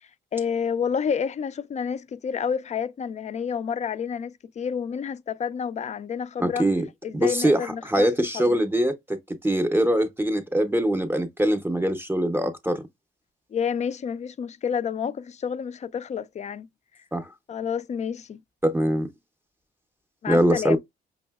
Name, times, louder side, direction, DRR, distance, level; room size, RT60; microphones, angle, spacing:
voice 1, 0.3-6.7 7.0-8.1 8.3-8.6 13.5-16.7 17.5-18.4 20.2-20.8, left 7 dB, 35° left, 0.4 m, -29 dB
voice 2, 6.4-6.8 7.1-12.8 17.1-17.3 18.6-19.1 20.3-20.8, right 1 dB, 10° right, 0.6 m, -23 dB
5.3 x 2.7 x 2.3 m
cardioid pair, 90°, 20 cm